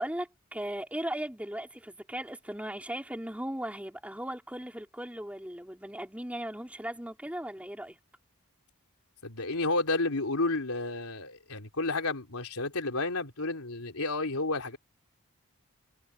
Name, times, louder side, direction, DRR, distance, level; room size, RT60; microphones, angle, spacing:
voice 1, 0.0-8.0, right 1 dB, 5° right, 4.3 m, -37 dB
voice 2, 9.2-14.8, left 2 dB, 90° left, 3.8 m, -31 dB
head